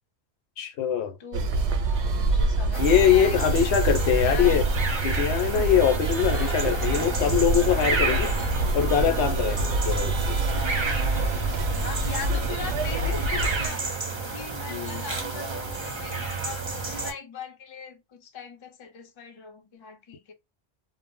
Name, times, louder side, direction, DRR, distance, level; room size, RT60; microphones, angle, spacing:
voice 1, 0.6-1.2 2.8-4.6 5.0-8.3 8.7-10.4 14.7-15.1, left 9 dB, 75° left, 0.9 m, -23 dB
voice 2, 1.2-1.5 2.0-3.8 4.2-4.7 11.7-13.9 14.3-20.3, left 5 dB, 40° left, 0.5 m, -40 dB
sound 1, 1.3-13.7, right 2 dB, 85° right, 0.9 m, -26 dB
sound 2, 2.7-17.1, right 4 dB, 35° right, 0.5 m, -31 dB
2.0 x 2.0 x 3.5 m
omnidirectional pair, 1.1 m